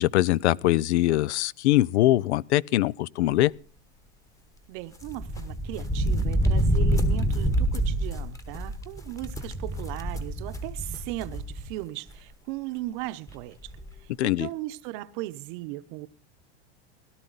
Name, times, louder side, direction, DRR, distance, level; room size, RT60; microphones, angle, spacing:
voice 1, 0.0-3.5 14.2-14.5, left 15 dB, 85° left, 0.5 m, -22 dB
voice 2, 4.7-13.7 14.0-16.1, right 17 dB, 50° right, 0.8 m, -37 dB
sound 1, 5.0-11.7 12.1-12.2 13.3-13.4 13.6-13.9, right 1 dB, 10° left, 1.2 m, -27 dB
17.5 x 12.0 x 4.0 m
supercardioid pair, 140°, 33 cm